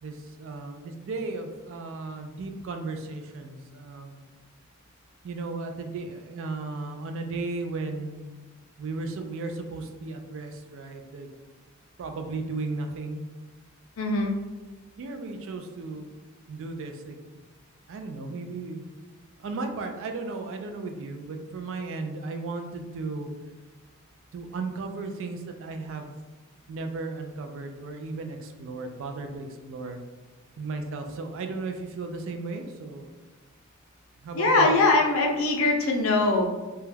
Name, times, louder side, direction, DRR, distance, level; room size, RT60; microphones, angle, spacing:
voice 1, 0.0-4.2 5.2-8.2 8.8-11.3 12.0-13.2 15.0-16.1 16.5-17.2 17.9-18.8 19.4-23.3 24.3-26.1 26.7-30.0 30.6-33.1 34.2-34.7, right 3 dB, 65° right, 5 dB, 0.3 m, -35 dB
voice 2, 14.0-14.3 34.3-36.5, left 2 dB, 70° left, 1 dB, 0.5 m, -22 dB
2.3 x 2.1 x 3.2 m, 1.2 s
head